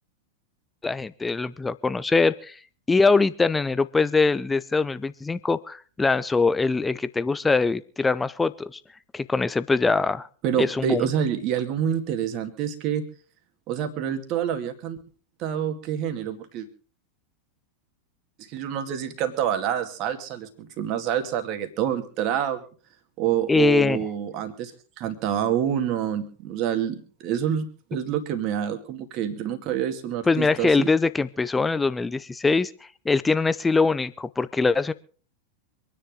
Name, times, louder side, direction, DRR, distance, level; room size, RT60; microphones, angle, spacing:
voice 1, 0.8-2.6 2.9-8.8 9.1-10.3 10.6-11.1 23.5-24.1 30.3-32.7 33.0-34.9, left 4 dB, 10° left, 16 dB, 0.7 m, -22 dB
voice 2, 10.4-13.0 13.7-15.0 15.4-16.7 18.5-22.6 23.2-24.7 25.0-30.9, right 9 dB, 40° right, 7 dB, 2.2 m, -27 dB
26.0 x 10.0 x 3.8 m, 0.41 s
figure-of-eight pair, 90°, 0 cm